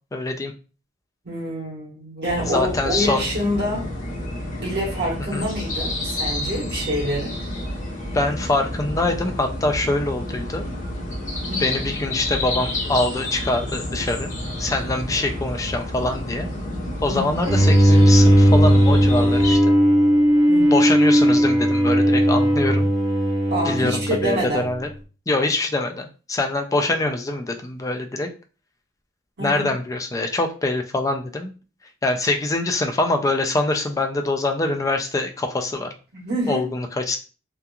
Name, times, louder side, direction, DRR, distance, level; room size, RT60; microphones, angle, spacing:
voice 1, 0.1-0.5 2.5-3.3 5.3-5.4 8.1-10.6 11.6-14.3 14.6-16.5 17.0-19.7 20.7-22.9 23.6-24.9 25.3-28.3 29.4-31.5 32.0-35.9 36.5-37.2, left 2 dB, 15° left, 0.3 m, -24 dB
voice 2, 1.2-3.9 4.6-7.4 11.5-11.8 17.1-17.5 20.5-20.9 23.5-24.7 29.4-29.7 36.1-36.7, equal, 55° right, 1.2 m, -27 dB
sound 1, 2.2-19.6, left 1 dB, 40° left, 0.9 m, -30 dB
Bowed string instrument, 17.4-24.7, equal, 15° right, 0.7 m, -16 dB
2.8 x 2.3 x 2.3 m
head